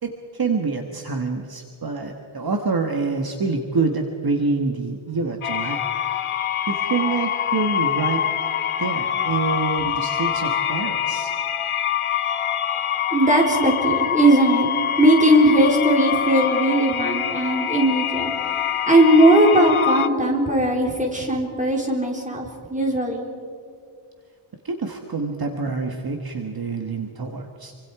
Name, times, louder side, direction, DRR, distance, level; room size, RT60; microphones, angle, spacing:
voice 1, 0.0-5.8 6.7-8.2 8.8-11.3 24.6-27.7, right 4 dB, 45° right, 3 dB, 1.6 m, -26 dB
sound 1, 5.4-20.1, left 9 dB, 80° left, 1.0 m, -25 dB
voice 2, 13.1-14.7 15.0-18.3 18.9-23.3, right 1 dB, 15° right, 0 dB, 4.1 m, -18 dB
27.5 x 25.0 x 4.9 m, 2.3 s
wide cardioid pair, 165°, 49 cm